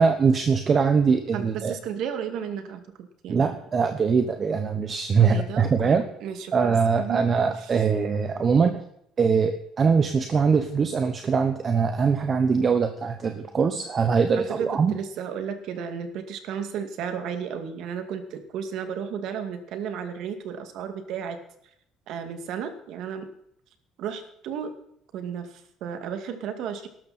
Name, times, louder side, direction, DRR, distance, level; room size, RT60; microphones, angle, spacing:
voice 1, 0.0-1.7 3.3-6.0 6.5-8.8 9.2-14.9, right 5 dB, 25° right, 7 dB, 1.1 m, -22 dB
voice 2, 1.3-3.6 5.2-7.7 14.4-21.4 22.1-23.3 24.0-24.8 25.1-26.9, right 7 dB, 60° right, 7 dB, 2.2 m, -34 dB
18.5 x 12.5 x 4.3 m, 0.72 s
cardioid pair, 160°, 0 cm